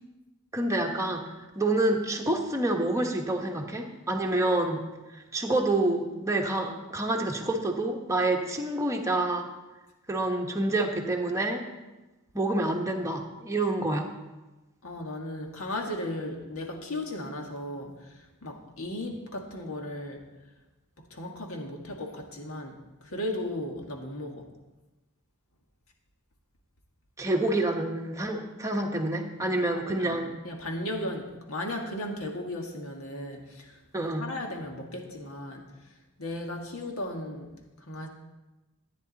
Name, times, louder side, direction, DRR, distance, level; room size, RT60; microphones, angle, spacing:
voice 1, 0.5-1.2 1.5-4.8 5.1-9.5 10.1-11.6 12.3-14.1 27.2-30.3 33.9-34.2, right 2 dB, 15° right, 1 dB, 1.2 m, -27 dB
voice 2, 14.8-20.2 21.1-22.8 23.0-24.5 29.7-37.5 37.8-38.1, left 1 dB, 70° left, 2 dB, 1.8 m, -36 dB
13.5 x 9.6 x 4.1 m, 1.1 s
head